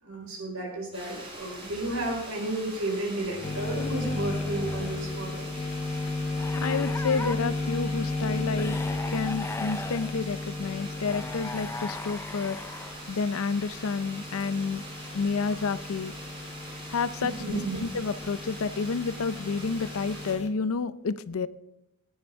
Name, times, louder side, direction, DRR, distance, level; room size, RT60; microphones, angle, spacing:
voice 1, 0.0-5.5 17.4-17.8, right 1 dB, 85° right, 1 dB, 4.6 m, -32 dB
sound 1, 0.9-20.3, right 2 dB, 25° right, 4.8 m, -44 dB
sound 2, 1.7-2.3 3.2-5.2 6.3-7.4 8.6-10.1 11.0-13.1, left 3 dB, 10° left, 0.4 m, -39 dB
sound 3, 3.4-20.5, left 3 dB, 30° left, 1.0 m, -34 dB
voice 2, 6.5-8.8 9.1-12.6 13.1-14.8 15.1-16.1 16.9-21.5, left 4 dB, 70° left, 15 dB, 0.5 m, -30 dB
17.5 x 9.6 x 3.5 m, 0.88 s
head